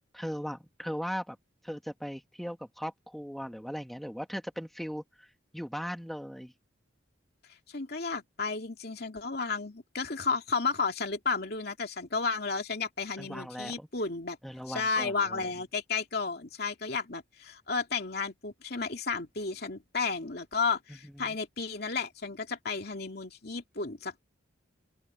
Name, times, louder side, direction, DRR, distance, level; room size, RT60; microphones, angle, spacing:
voice 1, 0.1-1.4 1.6-5.3 5.5-6.5 13.2-13.9 14.4-15.4 21.0-21.4, equal, ahead, 2.0 m, -38 dB
voice 2, 7.7-14.4 14.7-24.2, left 4 dB, 55° left, 2.7 m, -33 dB
open air
head